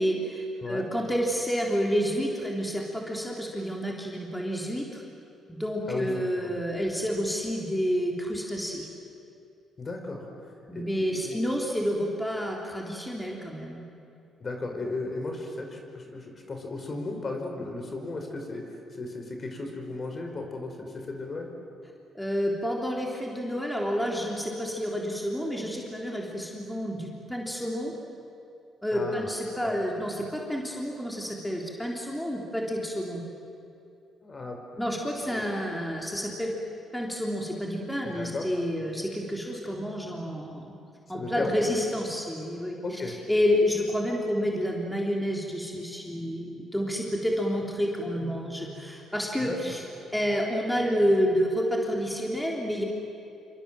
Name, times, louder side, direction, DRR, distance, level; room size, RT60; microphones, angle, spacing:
voice 1, 0.0-5.0 5.5-8.9 10.7-13.8 22.1-27.9 28.8-33.2 34.8-36.5 36.9-40.8 41.1-49.8 50.1-52.8, equal, 5° left, -1 dB, 3.7 m, -29 dB
voice 2, 9.8-10.3 10.7-11.4 14.4-21.5 28.9-29.3 29.6-29.8 34.2-34.6 35.2-35.5 38.1-38.4 41.1-41.6 42.8-43.1 49.4-49.6, left 3 dB, 40° left, 3 dB, 5.0 m, -35 dB
27.5 x 25.5 x 7.7 m, 2.7 s
cardioid pair, 90°, 0 cm